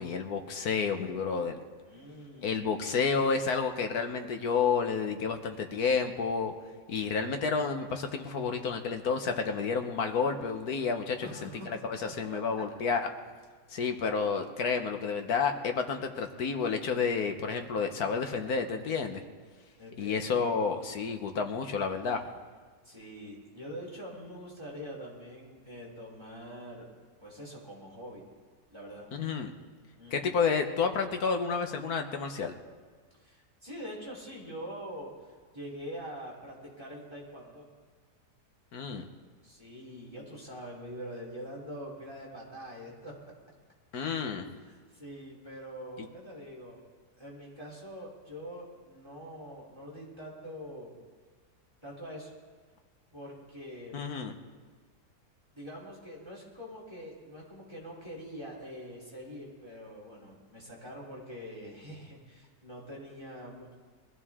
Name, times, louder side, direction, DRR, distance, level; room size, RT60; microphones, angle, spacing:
voice 1, 0.0-1.6 2.4-6.5 6.9-13.1 13.7-19.2 20.0-22.3 29.1-29.5 30.1-32.5 38.7-39.0 43.9-44.6 53.9-54.3, left 5 dB, 65° left, 6 dB, 1.5 m, -30 dB
voice 2, 1.9-2.6 11.2-12.4 19.8-20.4 22.8-26.8 27.2-28.2 28.7-29.1 30.0-30.3 33.1-37.7 39.4-43.1 44.6-46.8 47.2-51.0 51.8-52.3 53.1-54.0 55.5-63.7, equal, 15° right, -4 dB, 3.4 m, -44 dB
22.5 x 14.0 x 3.7 m, 1.5 s
omnidirectional pair, 1.8 m